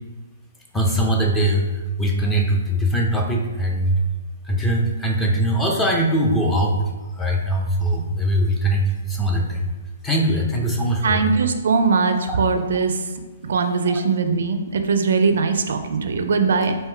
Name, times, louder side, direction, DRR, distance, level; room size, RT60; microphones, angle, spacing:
voice 1, 0.7-1.7 2.0-4.0 4.5-6.8 7.2-9.7 10.0-11.2 12.3-12.4 13.9-14.0, right 1 dB, 10° left, 0 dB, 0.6 m, -21 dB
voice 2, 11.0-13.0 13.4-16.8, right 4 dB, 70° right, 7 dB, 0.4 m, -20 dB
3.6 x 2.6 x 4.4 m, 1.2 s
hypercardioid pair, 140°, 0 cm